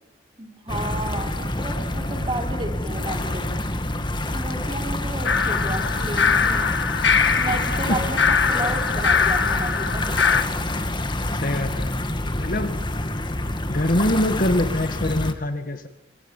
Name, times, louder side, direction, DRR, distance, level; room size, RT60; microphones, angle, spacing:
voice 1, 0.4-3.5 4.3-6.8 7.4-10.0, right 2 dB, 25° right, 3 dB, 4.9 m, -32 dB
sound 1, 0.7-15.3, left 1 dB, 25° left, 1.9 m, -27 dB
sound 2, 5.2-10.4, left 6 dB, 70° left, 2.0 m, -22 dB
voice 2, 11.4-12.1 12.4-12.8 13.7-15.9, left 1 dB, 50° left, 9 dB, 1.9 m, -24 dB
26.5 x 26.0 x 7.4 m, 0.81 s
head